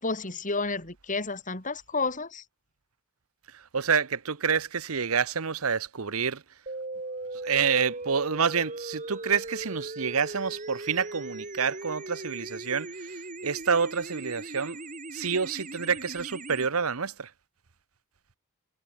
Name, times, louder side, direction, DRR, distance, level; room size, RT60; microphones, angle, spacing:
voice 1, 0.0-2.4, left 3 dB, 35° left, 4.1 m, -31 dB
voice 2, 3.7-6.4 7.4-13.1 13.4-14.8 15.1-17.3, right 6 dB, 80° right, 1.0 m, -28 dB
sound 1, 6.7-16.7, right 2 dB, 35° right, 3.5 m, -39 dB
head